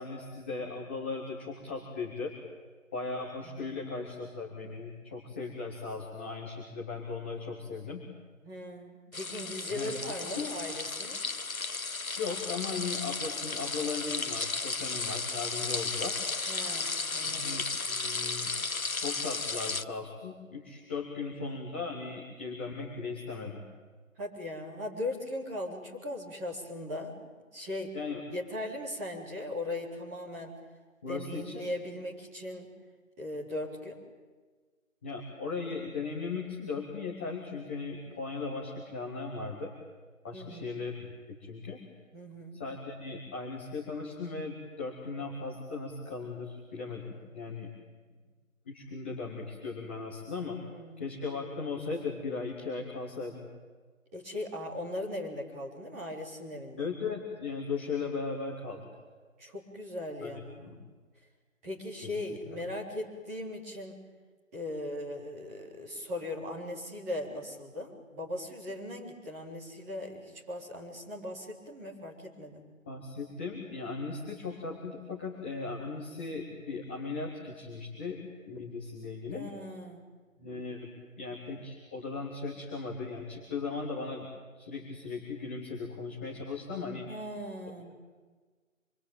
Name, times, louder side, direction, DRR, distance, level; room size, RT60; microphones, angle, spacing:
voice 1, 0.0-2.3 2.9-8.0 9.7-10.0 10.4-10.5 12.2-16.2 17.2-18.5 19.0-23.6 27.9-28.2 31.0-31.7 35.0-39.7 40.2-41.8 42.5-47.7 48.7-50.6 51.0-53.5 56.8-58.8 60.2-60.7 62.0-62.1 72.8-79.5 80.4-80.9 81.2-84.3 84.6-87.1, left 4 dB, 10° left, -5 dB, 1.6 m, -37 dB
voice 2, 3.4-3.8 8.4-11.2 16.5-17.6 24.2-27.2 27.5-27.9 28.3-30.5 31.1-32.7 33.2-34.0 40.3-40.7 42.1-42.6 50.7-51.1 54.1-56.9 59.4-60.8 61.6-64.0 64.5-72.6 79.3-80.1 87.1-87.9, left 1 dB, 10° right, -5 dB, 3.9 m, -39 dB
sound 1, 9.1-19.8, left 4 dB, 85° left, 1.2 m, -34 dB
27.0 x 23.5 x 9.1 m, 1.4 s
figure-of-eight pair, 165°, 41 cm